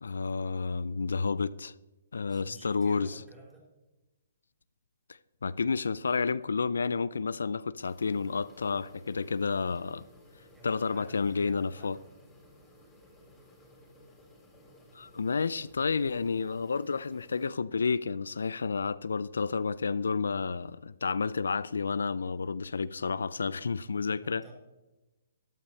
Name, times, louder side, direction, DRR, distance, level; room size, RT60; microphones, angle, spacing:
voice 1, 0.0-1.7 2.1-3.2 5.4-10.0 10.6-12.0 14.9-24.4, left 5 dB, 80° left, 0.4 m, -30 dB
voice 2, 2.3-3.7 10.5-12.0 24.1-24.5, right 2 dB, 10° right, 4.2 m, -52 dB
sound 1, 7.8-17.5, left 1 dB, 10° left, 3.2 m, -57 dB
13.5 x 11.5 x 3.3 m
hypercardioid pair, 140°, 0 cm